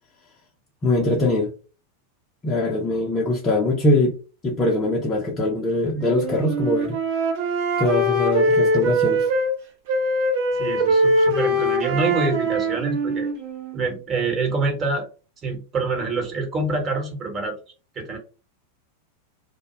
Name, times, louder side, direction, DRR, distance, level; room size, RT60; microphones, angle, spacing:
voice 1, 0.8-1.5 2.4-4.2 4.4-7.0 7.8-9.3, left 1 dB, 20° left, 0.5 m, -22 dB
Wind instrument woodwind instrument, 6.0-9.5 9.9-13.9, right 1 dB, 50° right, 0.6 m, -22 dB
voice 2, 10.5-13.3 13.7-15.1 15.4-17.6 17.9-18.2, right 3 dB, 25° right, 1.0 m, -25 dB
2.1 x 2.0 x 3.1 m
figure-of-eight pair, 90°, 0 cm